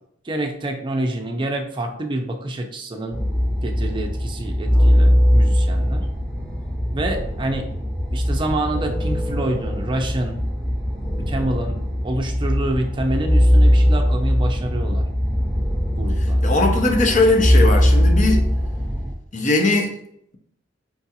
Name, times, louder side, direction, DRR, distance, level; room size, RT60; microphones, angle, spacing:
voice 1, 0.2-3.2 3.6-6.1 6.9-7.7 8.1-10.4 11.1-11.8 12.0-15.0 16.0-16.4, right 1 dB, 25° right, 4 dB, 0.5 m, -27 dB
sound 1, 3.1-19.1, equal, 5° left, 1.2 m, -20 dB
voice 2, 16.4-18.4 19.3-19.9, left 2 dB, 40° left, 3 dB, 0.6 m, -19 dB
4.6 x 2.4 x 2.8 m, 0.70 s
head